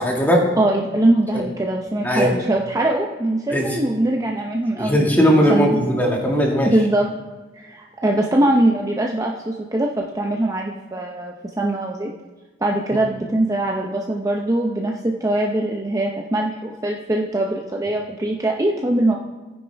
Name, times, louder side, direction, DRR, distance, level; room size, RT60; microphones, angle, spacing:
voice 1, 0.0-0.5 2.0-2.3 3.5-3.7 4.8-6.7 12.9-13.0, equal, 10° left, -1 dB, 2.0 m, -18 dB
voice 2, 0.6-5.8 6.7-7.1 7.6-12.1 12.6-19.2, right 1 dB, 20° right, 0 dB, 0.7 m, -22 dB
15.5 x 9.7 x 3.5 m, 1.2 s
head